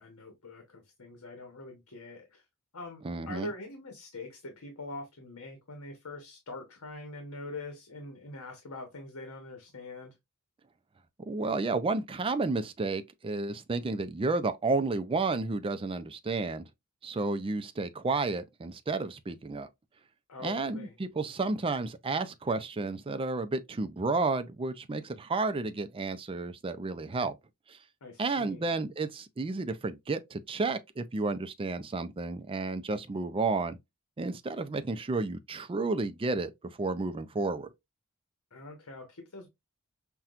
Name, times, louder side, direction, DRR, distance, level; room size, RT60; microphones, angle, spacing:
voice 1, 0.0-2.4 2.7-10.1 20.3-20.9 28.0-28.7 38.5-39.5, left 2 dB, 85° left, 1.0 m, -44 dB
voice 2, 3.0-3.5 11.3-16.6 17.0-19.7 20.4-27.4 27.7-27.8 28.2-33.8 34.2-37.7, right 3 dB, 25° right, 0.4 m, -31 dB
5.7 x 2.3 x 2.4 m
head